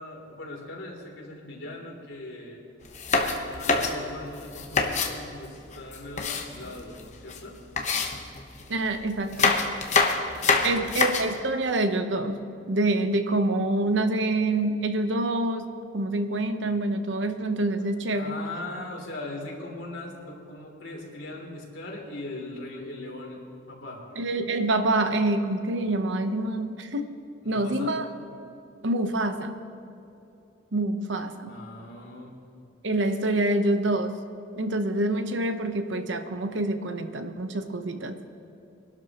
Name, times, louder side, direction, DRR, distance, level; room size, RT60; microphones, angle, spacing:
voice 1, 0.0-2.6 3.2-7.6 10.3-10.9 18.1-23.4 23.7-24.0 27.4-28.0 31.5-32.3, left 2 dB, 80° left, -2 dB, 3.0 m, -40 dB
sound 1, 2.9-5.2 5.7-7.0 7.3-7.4 7.8-8.7 9.2-11.4, left 4 dB, 40° left, 1.0 m, -25 dB
voice 2, 8.7-9.6 10.6-15.7 15.9-18.4 24.2-27.1 27.4-28.1 28.8-29.5 30.7-31.5 32.8-34.2 34.6-38.2, right 2 dB, 75° right, 8 dB, 0.9 m, -26 dB
23.0 x 12.0 x 3.0 m, 2.7 s
head